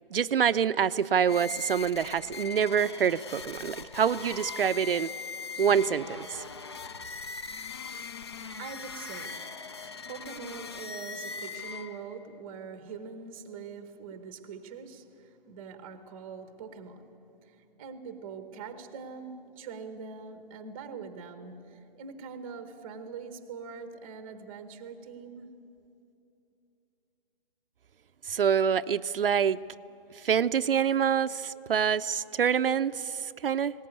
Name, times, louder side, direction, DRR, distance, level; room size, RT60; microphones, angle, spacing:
voice 1, 0.1-5.1 5.6-6.4 28.3-29.6 30.2-33.7, right 7 dB, 70° right, 11 dB, 0.6 m, -26 dB
sound 1, 1.2-12.2, left 5 dB, 30° left, 0.5 m, -40 dB
voice 2, 8.6-17.1 17.4-25.5, right 5 dB, 10° right, 9 dB, 0.8 m, -43 dB
20.0 x 18.0 x 9.4 m, 2.7 s
hypercardioid pair, 165°, 29 cm